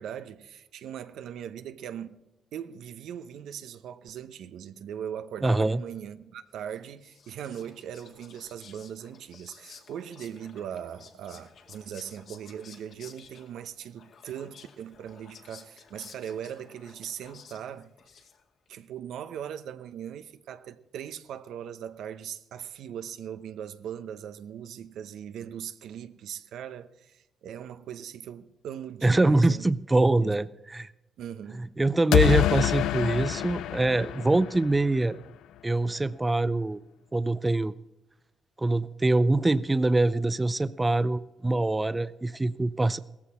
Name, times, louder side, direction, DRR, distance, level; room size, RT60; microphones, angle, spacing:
voice 1, 0.0-2.2 2.5-17.9 18.7-29.7 30.2-30.5 31.2-31.6, right 9 dB, 80° right, 0.8 m, -40 dB
voice 2, 5.4-5.8 29.0-30.9 31.6-35.2 35.6-36.8 37.1-37.7 38.6-43.0, right 2 dB, 15° right, 0.5 m, -24 dB
Whispering, 6.7-18.7, left 6 dB, 65° left, 2.0 m, -53 dB
sound 1, 32.1-35.0, left 13 dB, 90° left, 0.5 m, -26 dB
16.5 x 14.5 x 4.4 m
cardioid pair, 90°, 0 cm